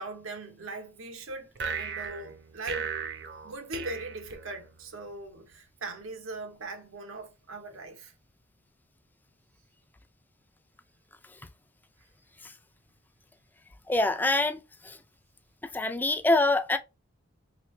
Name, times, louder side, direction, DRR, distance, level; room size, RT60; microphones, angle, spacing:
voice 1, 0.0-2.9 3.4-8.1, right 2 dB, 85° right, 0.9 m, -40 dB
sound 1, 1.6-5.0, right 6 dB, 55° right, 0.6 m, -37 dB
voice 2, 13.9-15.0 15.7-16.8, left 2 dB, 10° left, 0.3 m, -25 dB
3.2 x 3.1 x 3.1 m
head